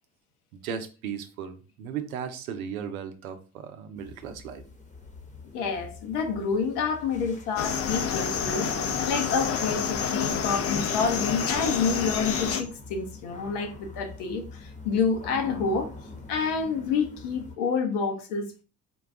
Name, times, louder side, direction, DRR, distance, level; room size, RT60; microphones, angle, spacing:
voice 1, 0.5-4.6, right 8 dB, 80° right, 0.6 m, -36 dB
sound 1, 4.0-17.5, left 3 dB, 20° left, 1.0 m, -45 dB
voice 2, 5.5-15.9 16.3-18.6, left 5 dB, 65° left, 0.9 m, -28 dB
sound 2, 7.6-12.6, left 7 dB, 35° left, 0.6 m, -28 dB
4.0 x 2.3 x 3.5 m
hypercardioid pair, 60°, 42 cm